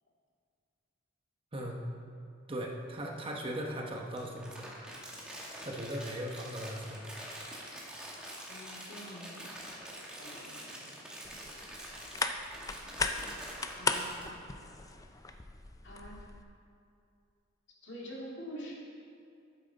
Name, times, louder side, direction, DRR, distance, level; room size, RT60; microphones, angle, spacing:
voice 1, 2.5-4.8 5.6-7.3, equal, 25° right, 0 dB, 1.0 m, -38 dB
Crumpling crinkling, 4.2-14.2, right 1 dB, 5° right, 1.7 m, -45 dB
voice 2, 8.5-9.5 10.2-11.0 12.8-12.9 13.8-14.6 15.8-16.4 17.8-18.7, equal, 60° left, -4 dB, 2.4 m, -46 dB
sound 1, 11.2-16.4, left 3 dB, 15° left, 0.4 m, -37 dB
12.5 x 8.8 x 4.0 m, 2.5 s
head